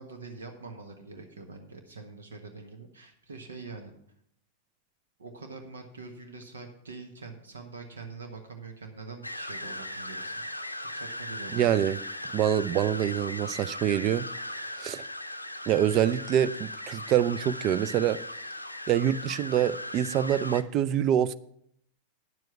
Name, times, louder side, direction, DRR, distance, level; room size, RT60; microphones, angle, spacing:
voice 1, 0.0-3.9 5.2-10.3 10.9-11.8, right 4 dB, 70° right, 1.2 m, -44 dB
sound 1, 9.2-20.6, left 1 dB, 85° left, 0.6 m, -38 dB
voice 2, 11.5-12.0 12.3-14.3 14.8-15.0 15.7-18.2 18.9-21.3, right 10 dB, 35° right, 0.5 m, -25 dB
9.6 x 7.7 x 5.8 m
figure-of-eight pair, 90°, 0 cm